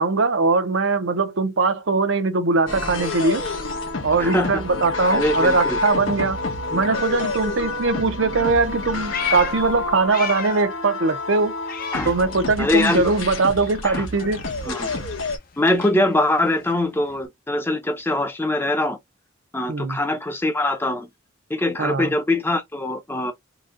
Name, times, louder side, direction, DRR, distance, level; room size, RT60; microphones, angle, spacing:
voice 1, 0.0-3.4 4.0-6.4 6.7-11.5 12.1-14.4 19.7-20.0 21.8-22.1, right 3 dB, 70° right, 0.7 m, -21 dB
sound 1, 2.7-15.4, left 3 dB, 85° left, 1.5 m, -28 dB
voice 2, 4.2-4.6 5.1-5.8 11.9-12.1 12.6-13.1 13.8-14.1 14.7-14.9 15.6-19.0 19.5-21.1 21.5-23.3, left 1 dB, 10° left, 0.6 m, -23 dB
Meow, 8.6-10.8 11.1-12.8 13.1-17.3, left 8 dB, 50° left, 0.7 m, -35 dB
4.0 x 2.3 x 3.7 m
head